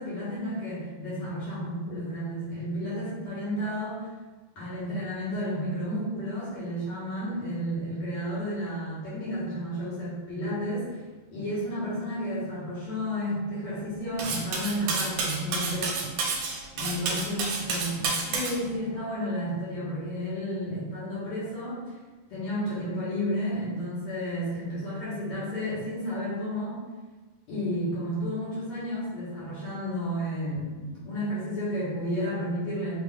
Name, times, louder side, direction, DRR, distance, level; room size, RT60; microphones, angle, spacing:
voice 1, 0.0-4.1 4.5-11.0 11.3-16.1 16.7-22.0 22.3-26.8 27.5-33.0, equal, 60° left, -10 dB, 1.9 m, -32 dB
Cutlery silverware, 14.2-18.6, right 4 dB, 85° right, 2.0 m, -30 dB
5.6 x 2.3 x 2.3 m, 1.3 s
omnidirectional pair, 3.4 m